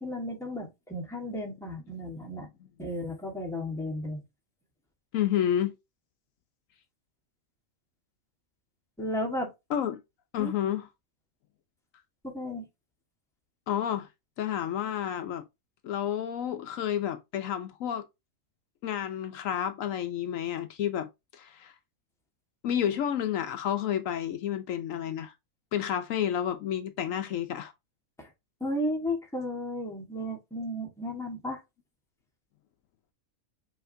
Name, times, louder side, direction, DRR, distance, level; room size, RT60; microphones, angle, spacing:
voice 1, 0.0-2.5 2.8-4.2 9.0-9.5 10.4-10.5 12.2-12.6 28.2-28.3 28.6-31.6, left 1 dB, ahead, 1.1 m, -34 dB
voice 2, 5.1-5.7 9.7-10.0 10.3-10.9 13.7-14.1 14.4-15.4 15.8-18.1 18.8-21.7 22.6-25.3 25.7-27.7, left 10 dB, 75° left, 0.9 m, -30 dB
5.5 x 2.9 x 2.6 m
omnidirectional pair, 1.5 m